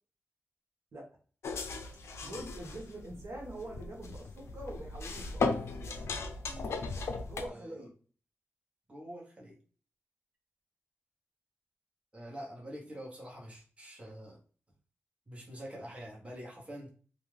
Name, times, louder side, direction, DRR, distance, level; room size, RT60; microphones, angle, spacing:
sound 1, 1.4-7.5, left 4 dB, 85° left, 0.4 m, -37 dB
voice 1, 2.2-5.5 7.2-7.9, right 1 dB, 80° right, -1 dB, 0.9 m, -44 dB
voice 2, 6.5-6.8 7.5-7.8 8.9-9.6 12.1-14.4 15.3-16.9, equal, 25° right, -2 dB, 1.0 m, -46 dB
2.4 x 2.3 x 3.2 m, 0.40 s
cardioid pair, 65°, 4 cm